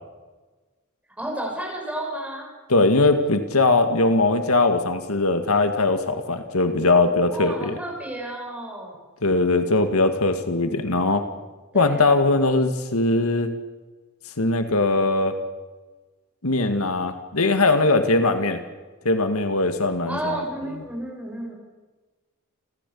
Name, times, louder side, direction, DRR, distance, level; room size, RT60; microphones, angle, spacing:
voice 1, 1.2-2.5 7.3-9.1 11.7-12.2 18.1-18.4 20.1-21.5, right 1 dB, 5° right, -1 dB, 6.7 m, -32 dB
voice 2, 2.7-7.8 9.2-11.2 11.7-13.5 14.4-15.4 16.4-18.6 19.1-20.4, left 2 dB, 80° left, 8 dB, 2.0 m, -20 dB
29.5 x 15.0 x 8.6 m, 1.3 s
head